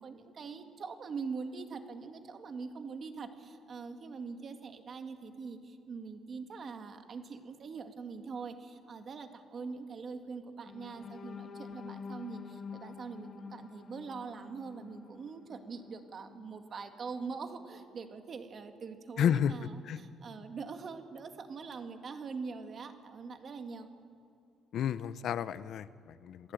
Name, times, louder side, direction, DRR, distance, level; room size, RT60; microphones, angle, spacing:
voice 1, 0.0-23.9, right 5 dB, 40° right, 6 dB, 2.0 m, -43 dB
sound 1, 10.6-16.6 17.1-17.2 17.6-17.8, left 6 dB, 40° left, 1.3 m, -48 dB
voice 2, 19.2-19.5 19.9-20.0 24.7-26.5, left 9 dB, 60° left, 15 dB, 0.6 m, -31 dB
27.5 x 16.5 x 9.0 m, 2.7 s
cardioid pair, 150°, 0 cm